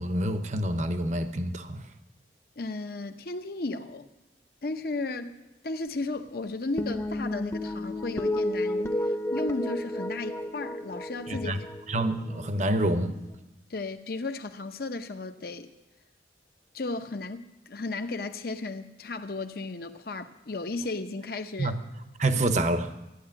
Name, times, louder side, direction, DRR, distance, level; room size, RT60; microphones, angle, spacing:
voice 1, 0.0-1.8 11.3-11.6 11.9-13.1 21.6-21.8 22.2-22.9, right 1 dB, 40° right, 0.8 m, -27 dB
voice 2, 2.6-4.1 4.6-11.6 13.7-15.7 16.7-21.8 22.5-22.6, left 3 dB, 55° left, 0.7 m, -34 dB
sound 1, 6.8-13.3, left 1 dB, 15° left, 0.7 m, -32 dB
13.0 x 9.9 x 8.7 m
head